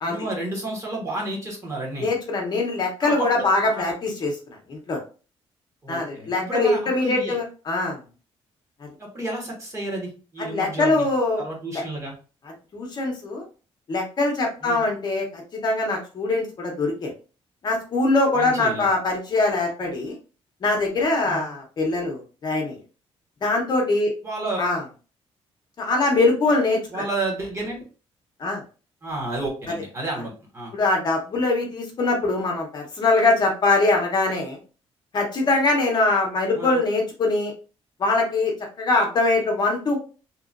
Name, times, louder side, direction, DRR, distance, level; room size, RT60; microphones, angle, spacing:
voice 1, 0.0-2.1 3.0-3.8 5.8-7.4 9.0-11.1 11.4-12.1 14.6-14.8 18.3-18.9 21.2-21.5 24.2-24.6 26.9-27.8 29.0-30.7 36.5-36.8, right 2 dB, 30° right, -1 dB, 1.2 m, -31 dB
voice 2, 2.0-4.3 4.7-5.0 5.9-8.0 10.4-11.4 11.7-11.8 12.7-13.4 13.9-17.1 17.6-20.2 20.6-22.8 23.4-24.1 24.6-24.8 25.8-27.0 28.4-28.6 30.7-34.6 35.1-37.5 38.0-38.5 38.8-40.0, left 2 dB, 40° left, 0 dB, 0.8 m, -22 dB
2.9 x 2.4 x 2.5 m, 0.34 s
cardioid pair, 145°, 11 cm